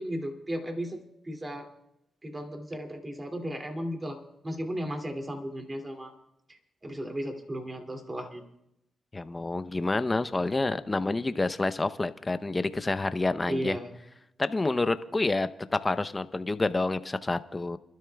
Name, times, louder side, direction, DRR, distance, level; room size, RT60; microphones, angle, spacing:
voice 1, 0.0-1.7 2.2-4.2 4.4-6.1 6.5-8.4 13.5-13.9, equal, 25° right, 4 dB, 2.6 m, -35 dB
voice 2, 9.1-13.8 14.4-17.8, left 2 dB, 25° left, 12 dB, 0.7 m, -28 dB
29.5 x 12.5 x 2.3 m, 0.82 s
cardioid pair, 70°, 0 cm